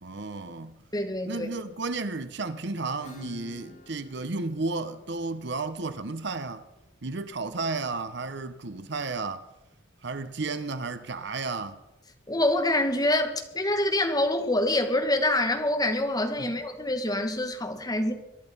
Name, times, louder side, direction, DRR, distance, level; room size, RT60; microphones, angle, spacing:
voice 1, 0.0-0.8 1.2-6.6 7.0-9.5 10.0-11.8 16.4-16.5, right 3 dB, 60° right, 0.9 m, -33 dB
voice 2, 0.9-1.5 12.3-18.1, left 1 dB, 20° left, 2.0 m, -26 dB
Acoustic guitar / Strum, 3.0-8.4, equal, 35° left, 4.9 m, -50 dB
22.5 x 11.5 x 5.5 m
head